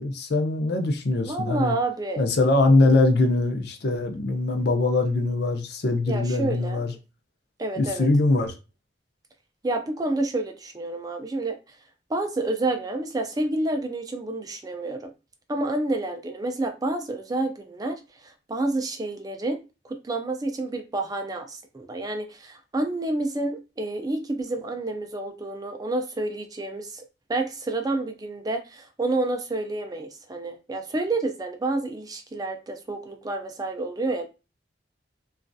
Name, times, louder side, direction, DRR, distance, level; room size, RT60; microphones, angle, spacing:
voice 1, 0.0-1.7 2.2-6.9 7.8-8.5, left 2 dB, 60° left, 0.6 m, -22 dB
voice 2, 1.2-2.2 6.1-6.8 7.6-8.1 9.6-11.6 12.1-15.1 15.5-27.0 27.3-34.2, right 2 dB, 20° right, 0.4 m, -29 dB
3.0 x 2.4 x 2.6 m
head